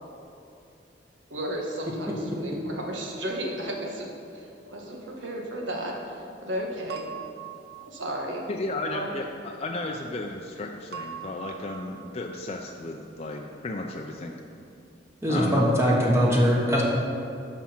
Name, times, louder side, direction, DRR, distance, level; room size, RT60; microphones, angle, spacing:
voice 1, 1.3-7.1 7.9-8.4 8.9-9.1, right 1 dB, 85° right, -1 dB, 1.5 m, -34 dB
sound 1, 6.9-8.2 10.9-12.1, right 9 dB, 60° right, 0.7 m, -41 dB
voice 2, 8.5-14.4 15.3-15.6, left 2 dB, 35° left, 1 dB, 0.5 m, -34 dB
voice 3, 15.2-16.8, equal, 15° right, -4 dB, 1.1 m, -21 dB
11.0 x 6.1 x 4.4 m, 2.6 s
head